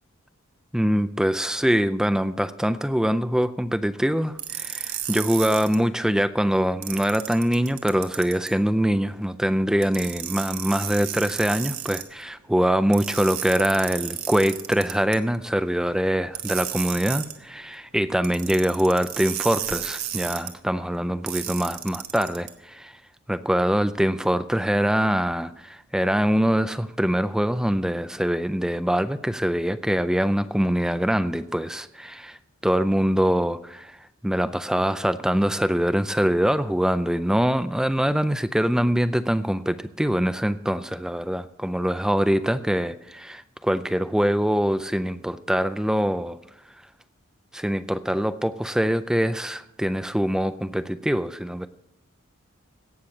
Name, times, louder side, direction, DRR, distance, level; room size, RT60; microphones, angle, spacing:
voice 1, 0.7-23.0 23.3-32.4 32.6-46.4 47.5-51.7, equal, 5° right, 12 dB, 0.4 m, -24 dB
sound 1, 4.4-5.8 6.8-8.5 9.8-12.0 12.9-15.2 16.3-17.4 18.2-20.5 21.3-22.5, right 11 dB, 75° right, 1.6 m, -33 dB
17.0 x 6.8 x 7.2 m, 0.81 s
head